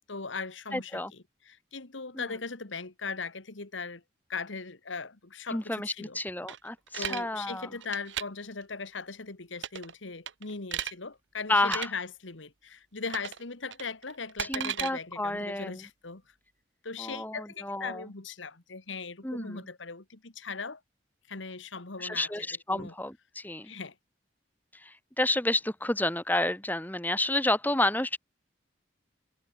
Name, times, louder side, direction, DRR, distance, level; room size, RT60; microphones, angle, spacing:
voice 1, 0.1-4.0 4.3-6.2 7.0-16.2 16.8-20.8 21.3-22.3 22.7-22.9 23.6-24.0, left 4 dB, 85° left, 1.8 m, -39 dB
voice 2, 0.7-1.1 2.1-2.3 5.5-7.7 11.5-11.9 14.4-15.9 17.0-18.0 19.2-19.7 22.0-23.7 24.7-28.2, left 1 dB, 10° left, 2.0 m, -30 dB
sound 1, 6.5-7.2 7.8-8.2 9.6-9.9 10.3-10.9 11.6-11.9 13.1-13.4 13.7-14.9, right 9 dB, 75° right, 1.3 m, -35 dB
head